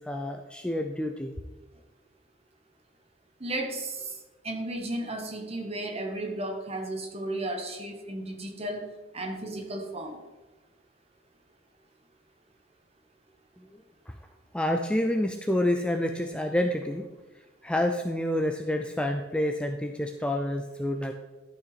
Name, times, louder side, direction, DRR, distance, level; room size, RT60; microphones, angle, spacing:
voice 1, 0.0-1.3 13.7-13.8 14.1-14.2 14.5-17.1 17.6-21.1, left 1 dB, 5° left, 5 dB, 0.4 m, -28 dB
voice 2, 3.4-4.1 4.4-8.9 9.1-10.2, right 1 dB, 30° right, 3 dB, 1.3 m, -34 dB
11.5 x 5.8 x 4.1 m, 1.1 s
head